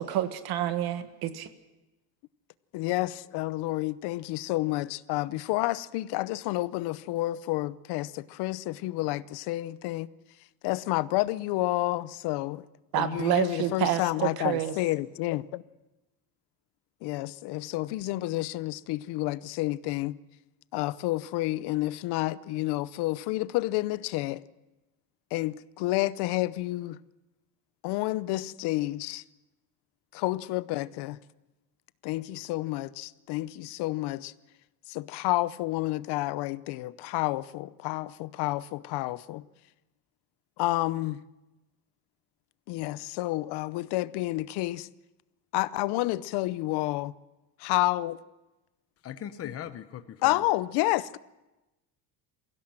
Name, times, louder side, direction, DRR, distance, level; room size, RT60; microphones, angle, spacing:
voice 1, 0.0-1.5 12.9-14.7, right 12 dB, 65° right, 1.6 m, -28 dB
voice 2, 2.7-10.1 10.6-12.6 13.0-15.6 17.0-20.2 20.7-24.4 25.3-27.0 27.8-29.2 30.1-31.2 32.0-34.3 34.9-39.4 40.6-41.2 42.7-44.9 45.5-47.1 47.6-48.2 50.2-51.2, left 18 dB, 85° left, 0.8 m, -30 dB
voice 3, 49.0-50.4, left 10 dB, 35° left, 1.0 m, -39 dB
23.0 x 16.0 x 7.7 m
cardioid pair, 150°, 39 cm